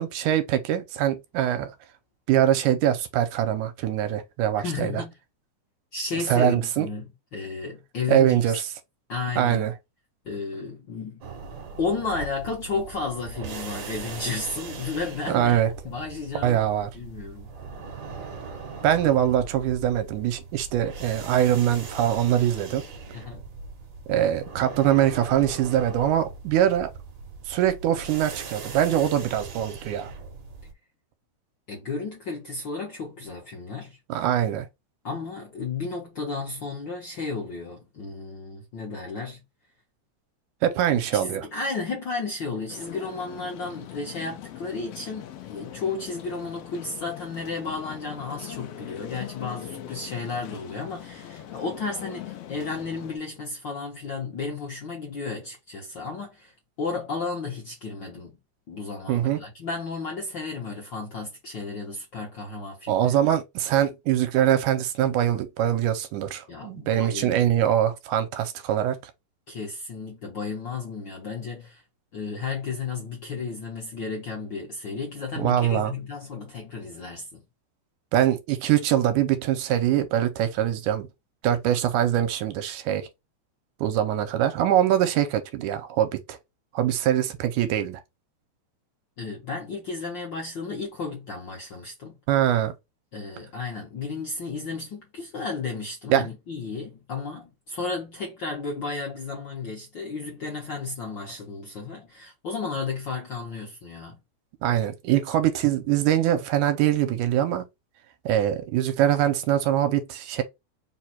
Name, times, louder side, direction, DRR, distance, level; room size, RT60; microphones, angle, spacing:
voice 1, 0.0-1.8 2.3-5.0 6.3-6.9 8.1-8.6 9.4-9.7 15.3-15.7 16.4-16.9 18.8-22.8 24.1-26.9 27.5-30.1 34.1-34.7 40.6-41.5 59.1-59.4 62.9-69.1 75.4-75.9 78.1-81.1 81.4-83.1 83.8-86.4 86.7-88.0 92.3-92.7 96.1-96.3 104.6-107.7 108.3-110.4, right 11 dB, 85° right, 2.1 m, -23 dB
voice 2, 4.6-5.1 5.9-8.6 9.1-9.6 10.2-11.2 11.8-15.6 15.8-16.7 16.9-17.5 23.1-23.5 31.7-34.0 35.0-39.4 40.9-58.4 58.7-63.1 66.5-67.5 69.5-71.8 72.1-77.4 89.2-92.2 93.1-104.2, left 4 dB, 70° left, 1.1 m, -33 dB
sound 1, 11.2-30.7, right 4 dB, 65° right, 1.2 m, -40 dB
sound 2, 42.7-53.2, left 11 dB, 85° left, 1.4 m, -41 dB
4.8 x 2.2 x 4.2 m
omnidirectional pair, 3.6 m